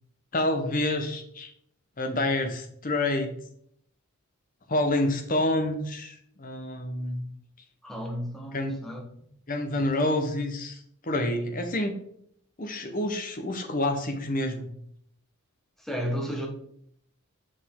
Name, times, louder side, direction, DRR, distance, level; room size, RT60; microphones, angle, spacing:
voice 1, 0.3-1.5 2.0-3.3 4.7-7.2 8.5-8.8 9.5-11.9 12.6-14.7, left 1 dB, 40° left, 0.9 m, -28 dB
voice 2, 7.8-9.0 15.8-16.5, equal, ahead, 1.2 m, -33 dB
6.3 x 5.1 x 3.7 m
head